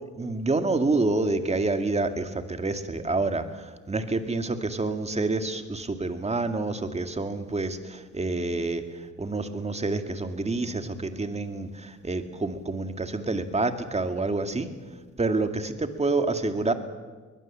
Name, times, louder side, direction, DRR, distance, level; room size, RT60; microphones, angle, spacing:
voice 1, 0.2-14.7 15.2-16.7, right 3 dB, 20° right, 7 dB, 2.2 m, -28 dB
22.5 x 20.5 x 7.5 m, 1.4 s
cardioid pair, 90°, 30 cm